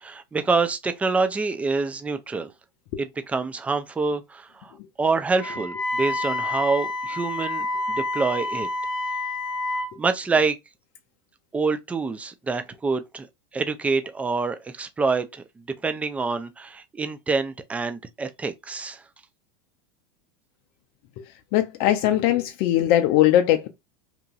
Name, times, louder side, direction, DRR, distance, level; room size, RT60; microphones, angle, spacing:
voice 1, 0.0-2.5 3.0-4.7 5.0-8.7 10.0-10.6 11.5-13.3 13.5-15.4 15.8-19.0, right 4 dB, 10° right, 0.3 m, -26 dB
Wind instrument woodwind instrument, 5.4-9.9, left 2 dB, 85° left, 0.7 m, -28 dB
voice 2, 21.5-23.7, left 12 dB, 55° left, 0.4 m, -20 dB
2.9 x 2.5 x 2.3 m
hypercardioid pair, 110°, 12 cm